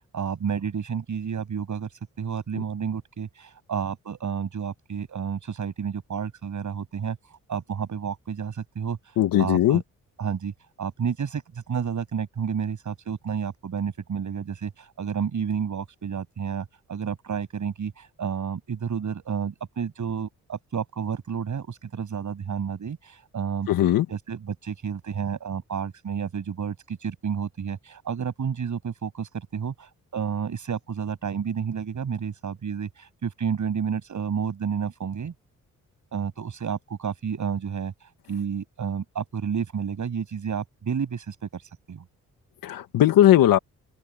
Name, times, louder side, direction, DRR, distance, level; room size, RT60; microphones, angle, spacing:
voice 1, 0.1-9.8 10.2-10.5 10.8-23.7 24.1-35.3 36.1-42.0, right 7 dB, 60° right, 7.9 m, -31 dB
voice 2, 9.2-9.8 23.7-24.1 42.6-43.6, left 12 dB, 80° left, 1.8 m, -18 dB
open air
supercardioid pair, 50°, 34 cm